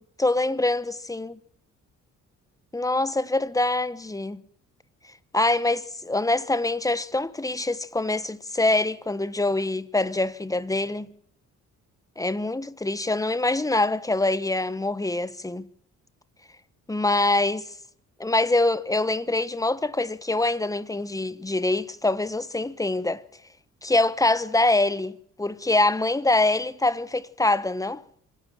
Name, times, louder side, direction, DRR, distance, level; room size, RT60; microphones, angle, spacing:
voice 1, 0.2-1.4 2.7-4.4 5.3-11.1 12.2-15.7 16.9-17.7 18.2-23.2 23.8-28.0, left 2 dB, 10° left, 1.3 m, -24 dB
26.0 x 11.5 x 9.2 m
cardioid pair, 90°, 30 cm